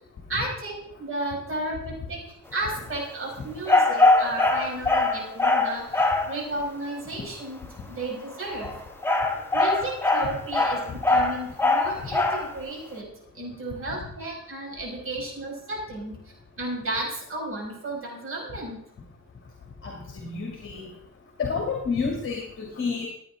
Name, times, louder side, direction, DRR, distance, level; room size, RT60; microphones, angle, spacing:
voice 1, 0.3-2.2 2.5-7.6 7.9-8.7 9.5-13.1 13.3-16.1 16.6-18.8, right 2 dB, 45° right, -2 dB, 5.9 m, -33 dB
sound 1, 3.7-6.3 8.4-12.5, left 2 dB, 5° left, 1.5 m, -22 dB
voice 2, 19.8-20.9 21.4-23.1, left 5 dB, 40° left, 1 dB, 2.4 m, -30 dB
15.5 x 9.0 x 3.8 m, 0.70 s
cardioid pair, 110°, 30 cm